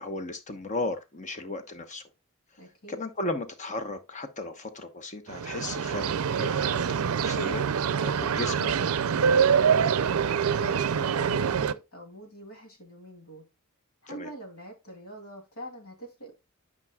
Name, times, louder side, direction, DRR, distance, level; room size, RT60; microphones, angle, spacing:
voice 1, 0.0-2.0 2.9-7.7 8.0-8.7 14.1-14.3, left 2 dB, 35° left, 1.0 m, -35 dB
voice 2, 2.6-3.0 9.5-9.9 10.6-13.5 14.0-16.3, right 1 dB, 80° left, 2.8 m, -44 dB
sound 1, 5.3-11.7, right 7 dB, 80° right, 0.5 m, -25 dB
11.5 x 5.4 x 2.3 m
head